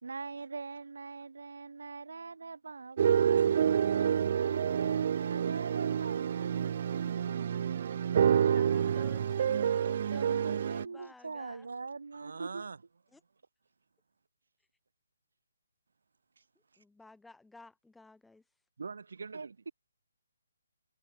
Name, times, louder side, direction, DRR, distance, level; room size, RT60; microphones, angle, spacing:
voice 1, 0.0-6.6 7.2-7.3 8.4-9.0 10.1-12.7 19.3-19.5, right 4 dB, 90° right, 2.1 m, -43 dB
sound 1, 3.0-10.8, right 8 dB, 35° right, 0.5 m, -28 dB
voice 2, 8.5-11.7 13.1-13.2 16.8-18.4, left 3 dB, ahead, 2.3 m, -56 dB
voice 3, 12.1-12.8 16.4-16.5 16.7-16.8 18.8-19.6, right 4 dB, 70° right, 1.4 m, -44 dB
hypercardioid pair, 175°, 0 cm